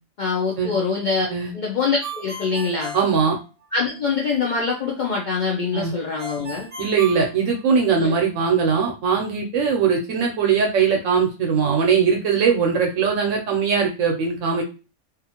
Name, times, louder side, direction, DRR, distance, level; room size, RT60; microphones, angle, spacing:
voice 1, 0.2-1.3 1.5-3.0 3.7-6.7 8.0-8.1, left 4 dB, 70° left, -2 dB, 0.4 m, -24 dB
Ringtone, 2.0-3.9 6.2-8.1, right 2 dB, 55° right, 0.6 m, -36 dB
voice 2, 2.9-3.4 5.7-5.9 6.8-14.6, right 6 dB, 75° right, 2 dB, 0.9 m, -20 dB
2.5 x 2.4 x 2.7 m, 0.32 s
omnidirectional pair, 1.3 m